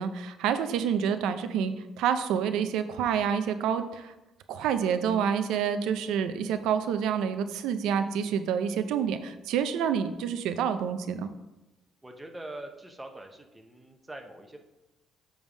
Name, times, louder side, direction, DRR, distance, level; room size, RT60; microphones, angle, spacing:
voice 1, 0.0-4.1 4.5-11.3, right 7 dB, 90° right, 9 dB, 0.5 m, -28 dB
voice 2, 12.0-14.6, right 1 dB, 10° right, 3 dB, 0.7 m, -43 dB
7.2 x 3.4 x 6.2 m, 0.99 s
cardioid pair, 145°, 0 cm